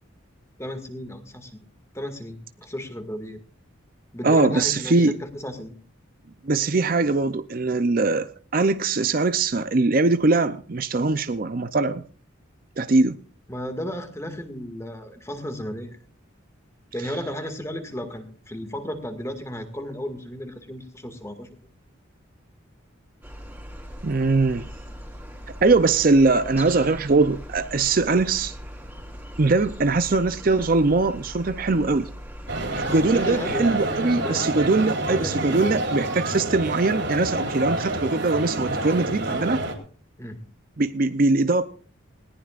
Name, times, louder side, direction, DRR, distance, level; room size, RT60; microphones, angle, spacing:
voice 1, 0.6-1.7 1.9-3.4 4.1-5.8 13.5-16.0 16.9-21.5 33.0-35.8 40.2-40.4, equal, 15° left, 2.0 m, -34 dB
voice 2, 4.2-5.2 6.4-12.0 12.8-13.2 24.0-24.7 25.6-28.6 29.4-32.1 32.7-39.6 40.8-41.7, right 3 dB, 45° right, 0.5 m, -21 dB
sound 1, 23.2-34.1, equal, 10° right, 3.4 m, -40 dB
sound 2, 32.5-39.7, right 2 dB, 60° right, 3.5 m, -28 dB
20.0 x 18.0 x 2.5 m
head